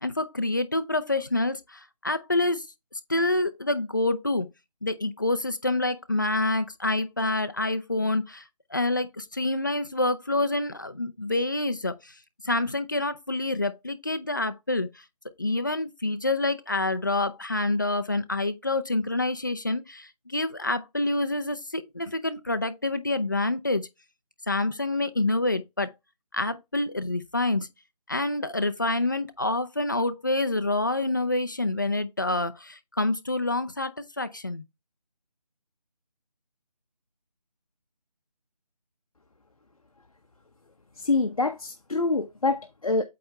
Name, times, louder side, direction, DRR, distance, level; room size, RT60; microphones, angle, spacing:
voice 1, 0.0-2.7 3.1-4.5 4.8-8.4 8.7-11.9 12.4-14.9 15.4-23.9 24.5-25.9 26.3-27.7 28.1-34.6, left 2 dB, 30° left, 0.6 m, -27 dB
voice 2, 41.0-43.0, left 3 dB, 60° left, 0.9 m, -26 dB
8.5 x 3.4 x 4.1 m
figure-of-eight pair, 175°, 21 cm